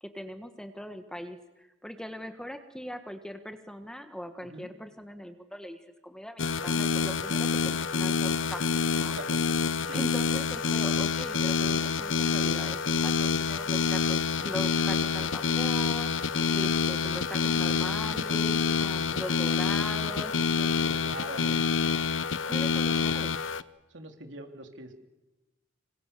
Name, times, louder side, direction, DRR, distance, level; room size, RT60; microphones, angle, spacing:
voice 1, 0.0-9.2 9.9-20.9 21.2-21.5 22.5-23.4, equal, 5° left, 8 dB, 1.5 m, -41 dB
sound 1, 6.4-23.6, left 5 dB, 80° left, 0.9 m, -27 dB
voice 2, 9.1-9.5 9.8-10.0 20.9-21.7 23.9-24.9, right 2 dB, 70° right, 5 dB, 3.4 m, -43 dB
28.0 x 25.5 x 6.9 m, 1.1 s
head